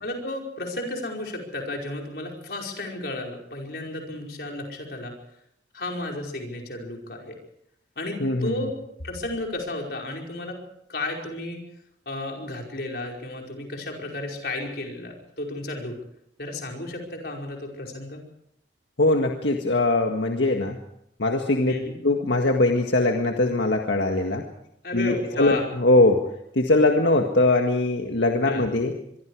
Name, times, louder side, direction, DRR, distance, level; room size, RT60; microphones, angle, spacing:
voice 1, 0.0-5.1 5.7-7.4 8.0-10.6 10.9-11.6 12.1-16.0 16.4-18.2 21.7-22.0 24.8-25.6 28.5-28.6, left 2 dB, 60° left, 0 dB, 5.2 m, -33 dB
voice 2, 8.2-8.5 19.0-20.8 21.2-21.7 22.0-24.4 24.9-26.2 26.5-28.9, left 2 dB, 85° left, 3 dB, 1.8 m, -21 dB
24.5 x 23.5 x 4.9 m, 0.72 s
head